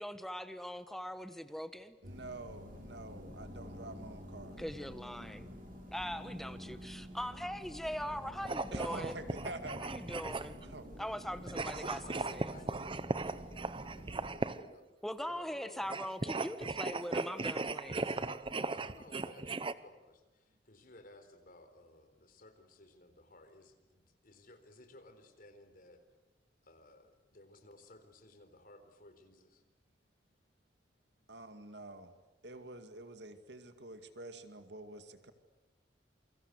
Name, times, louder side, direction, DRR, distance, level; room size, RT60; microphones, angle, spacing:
voice 1, 0.0-2.0 4.6-5.5 5.9-9.2 9.8-10.6 11.0-12.5 15.0-18.0, equal, ahead, 11 dB, 1.2 m, -41 dB
sound 1, 2.0-14.3, equal, 55° right, 7.7 m, -49 dB
voice 2, 2.0-4.6 8.7-9.8 10.7-10.9 11.7-11.8 12.1-12.3 31.3-32.1 32.4-35.3, right 2 dB, 70° right, 8 dB, 2.2 m, -47 dB
sound 2, 8.4-10.7 11.5-14.7 15.8-19.7, right 3 dB, 30° right, 0.8 m, -38 dB
voice 3, 11.8-14.9 15.3-16.0 16.9-17.1 17.9-26.0 26.6-29.6, left 2 dB, 55° left, 8 dB, 4.0 m, -57 dB
28.5 x 24.5 x 8.2 m, 1.1 s
head